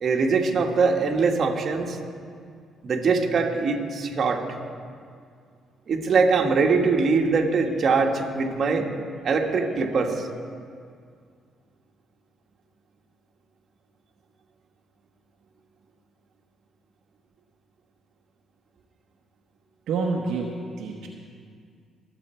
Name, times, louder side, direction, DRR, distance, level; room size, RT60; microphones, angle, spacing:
voice 1, 0.0-2.0 2.8-4.4 5.9-8.9 9.2-10.3, right 4 dB, 55° right, 2 dB, 1.6 m, -22 dB
voice 2, 19.9-21.1, right 4 dB, 80° right, -1 dB, 1.1 m, -28 dB
23.0 x 8.2 x 4.5 m, 2.2 s
cardioid pair, 75°, 0 cm